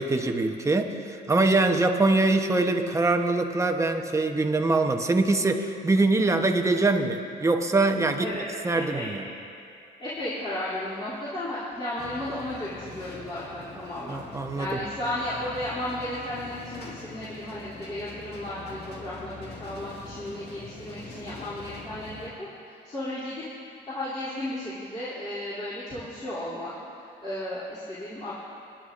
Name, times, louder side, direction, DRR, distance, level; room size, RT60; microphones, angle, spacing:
voice 1, 0.0-9.2 14.1-14.8, right 2 dB, 15° right, 5 dB, 0.9 m, -24 dB
voice 2, 8.2-9.1 10.0-14.2 14.5-22.3 22.6-26.7 27.0-28.3, left 1 dB, 30° left, -12 dB, 2.9 m, -34 dB
sound 1, 12.0-22.3, left 3 dB, 65° left, 1.8 m, -43 dB
27.5 x 10.0 x 2.6 m, 2.6 s
cardioid pair, 100°, 18 cm